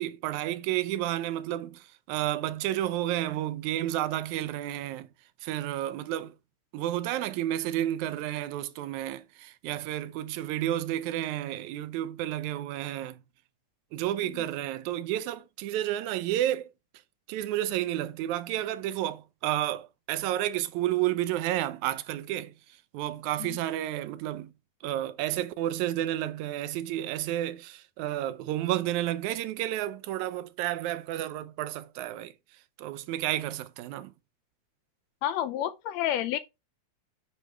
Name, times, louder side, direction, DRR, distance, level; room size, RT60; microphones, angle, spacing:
voice 1, 0.0-5.1 5.4-6.3 6.7-13.2 13.9-16.7 17.3-22.5 22.9-24.5 24.8-32.3 32.8-34.1, right 13 dB, 85° right, 2.0 m, -31 dB
voice 2, 35.2-36.4, left 12 dB, 80° left, 1.7 m, -30 dB
8.3 x 5.1 x 3.3 m
omnidirectional pair, 3.3 m